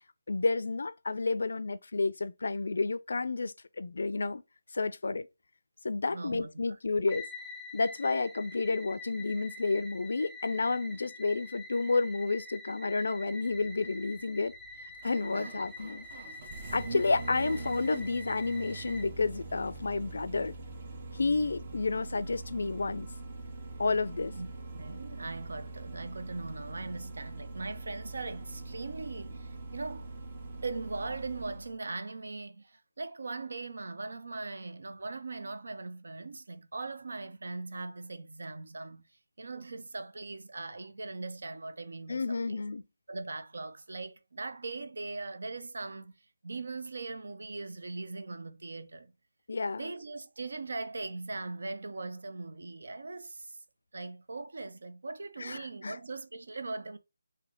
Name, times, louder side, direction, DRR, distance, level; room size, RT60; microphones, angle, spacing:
voice 1, 0.3-4.4 4.7-5.3 5.8-7.3 7.7-14.5 15.0-16.1 16.7-20.5 21.1-23.1 23.8-24.3 42.1-42.8 49.5-49.9 55.4-56.0, left 3 dB, 65° left, 0.4 m, -30 dB
voice 2, 6.1-6.5 15.3-15.5 24.3-24.5 24.7-30.1 30.6-39.0 39.4-42.6 43.1-46.1 46.4-49.1 49.7-53.6 53.9-57.0, right 3 dB, 70° right, 0.6 m, -40 dB
sound 1, 7.1-19.1, left 2 dB, 10° right, 0.4 m, -47 dB
Engine starting, 13.3-31.7, right 2 dB, 35° right, 0.8 m, -43 dB
3.4 x 2.7 x 3.7 m
figure-of-eight pair, 165°, 0 cm